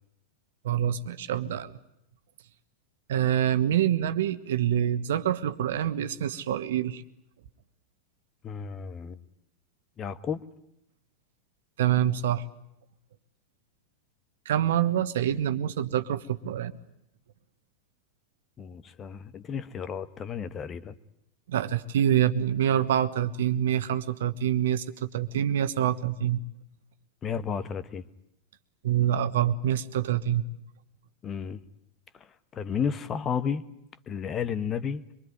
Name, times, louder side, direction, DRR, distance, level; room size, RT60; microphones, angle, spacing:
voice 1, 0.6-1.7 3.1-7.0 11.8-12.4 14.4-16.7 21.5-26.4 28.8-30.5, right 10 dB, 60° right, 12 dB, 1.3 m, -26 dB
voice 2, 8.4-9.2 10.0-10.4 18.6-20.9 27.2-28.0 31.2-31.6 32.5-33.6 34.1-35.0, left 7 dB, 25° left, 14 dB, 1.3 m, -32 dB
24.5 x 24.0 x 9.4 m, 0.78 s
figure-of-eight pair, 90°, 0 cm